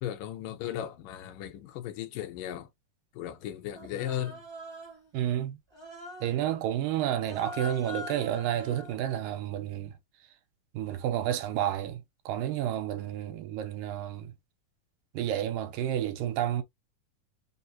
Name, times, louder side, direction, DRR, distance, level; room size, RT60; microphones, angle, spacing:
voice 1, 0.0-2.7 3.2-4.4, left 11 dB, 80° left, 2.4 m, -36 dB
Human voice, 3.7-5.1 5.7-6.4 7.2-8.9, left 2 dB, 35° right, 0.4 m, -43 dB
voice 2, 5.1-5.6 6.2-9.9 10.7-14.3 15.1-16.6, right 11 dB, 85° right, 2.4 m, -30 dB
5.6 x 2.1 x 2.7 m
omnidirectional pair, 3.9 m